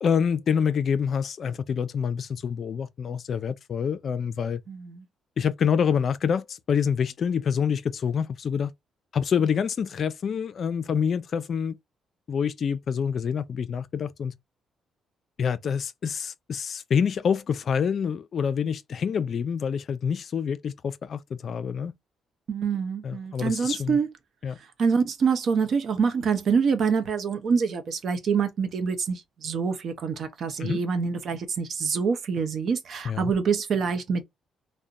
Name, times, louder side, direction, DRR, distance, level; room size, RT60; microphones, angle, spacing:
voice 1, 0.0-4.6 5.4-8.7 9.1-11.8 12.3-14.3 15.4-21.9 23.0-24.0 24.4-24.6 30.6-30.8 33.0-33.3, left 7 dB, 55° left, 0.3 m, -27 dB
voice 2, 4.7-5.0 22.5-24.1 24.8-34.2, right 6 dB, 60° right, 0.6 m, -26 dB
2.7 x 2.1 x 2.2 m
cardioid pair, 90°, 0 cm